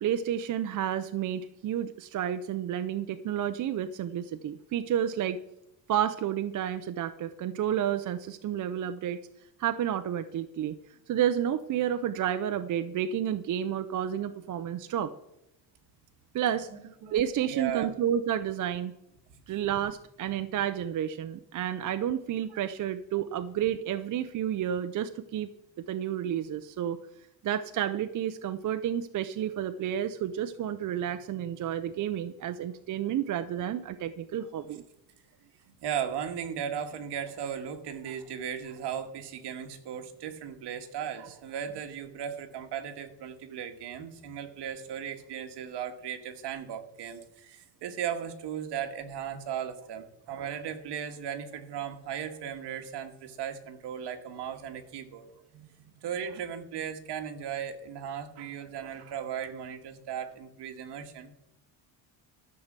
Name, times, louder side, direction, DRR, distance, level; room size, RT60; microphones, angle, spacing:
voice 1, 0.0-5.4 5.9-9.2 9.6-10.7 11.1-15.1 16.3-16.7 17.1-18.9 19.5-25.5 25.9-27.0 27.4-34.8 55.6-55.7, right 10 dB, 45° right, 10 dB, 0.6 m, -30 dB
voice 2, 16.7-17.2 17.5-17.9 22.5-22.6 35.7-55.4 56.0-61.3, right 8 dB, 65° right, 5 dB, 1.8 m, -37 dB
13.0 x 6.7 x 7.4 m, 0.87 s
cardioid pair, 140°, 43 cm